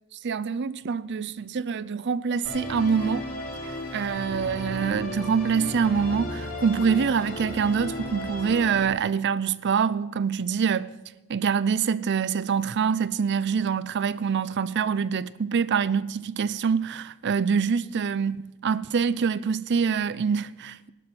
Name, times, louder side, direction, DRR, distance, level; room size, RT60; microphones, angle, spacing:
voice 1, 0.1-3.2 3.6-10.9 11.3-20.9, right 6 dB, 55° right, 0.4 m, -25 dB
Musical instrument, 2.4-8.8, left 1 dB, 70° left, 2.7 m, -35 dB
17.0 x 12.5 x 4.5 m
head